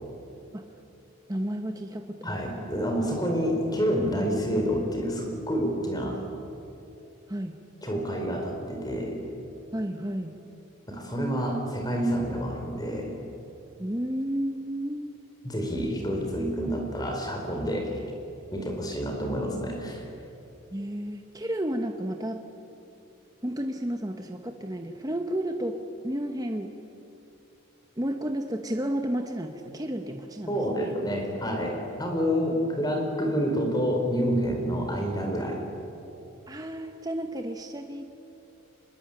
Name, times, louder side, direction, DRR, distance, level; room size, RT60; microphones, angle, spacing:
voice 1, 1.3-2.4 7.3-7.6 9.7-10.4 13.8-15.1 20.7-22.4 23.4-25.8 26.0-26.7 28.0-30.9 36.5-38.2, right 1 dB, 15° right, 5 dB, 1.0 m, -32 dB
voice 2, 2.2-6.2 7.8-9.2 10.9-13.1 15.4-17.9 18.5-20.0 30.5-35.6, equal, 20° left, 2 dB, 4.2 m, -28 dB
25.5 x 22.0 x 9.1 m, 2.8 s
head